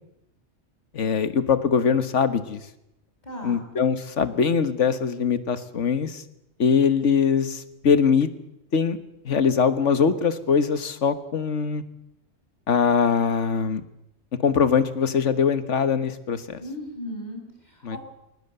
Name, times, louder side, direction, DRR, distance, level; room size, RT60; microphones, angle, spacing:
voice 1, 0.9-2.6 3.4-6.2 6.6-8.3 8.7-9.0 9.2-11.8 12.7-13.8 14.4-16.6 17.8-18.0, left 6 dB, 75° left, 12 dB, 1.7 m, -22 dB
voice 2, 3.2-3.6 16.6-18.0, left 1 dB, 35° left, 1 dB, 6.2 m, -36 dB
21.0 x 19.0 x 8.0 m, 0.85 s
omnidirectional pair, 1.2 m